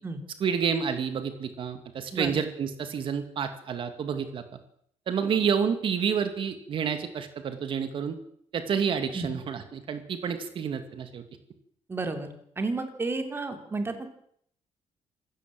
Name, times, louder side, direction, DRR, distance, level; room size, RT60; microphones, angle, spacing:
voice 1, 0.4-4.4 5.1-8.2 8.5-11.2, right 7 dB, 45° right, 8 dB, 2.4 m, -29 dB
voice 2, 11.9-12.3 12.6-14.1, right 3 dB, 20° right, 6 dB, 3.3 m, -31 dB
26.5 x 16.5 x 7.8 m, 0.67 s
cardioid pair, 170°, 12 cm